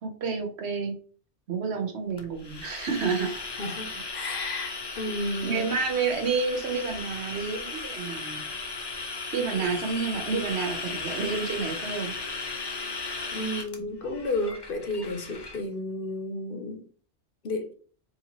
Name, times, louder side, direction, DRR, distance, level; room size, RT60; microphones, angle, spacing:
voice 1, 0.0-1.0 1.5-3.3 5.4-8.5 9.3-12.1, right 5 dB, 70° right, 1.1 m, -29 dB
sound 1, 2.2-15.6, left 3 dB, 30° left, 0.5 m, -36 dB
voice 2, 3.2-5.7 9.5-9.7 13.3-16.9 17.4-17.7, left 1 dB, 55° left, 0.8 m, -32 dB
4.5 x 2.9 x 2.9 m
omnidirectional pair, 1.1 m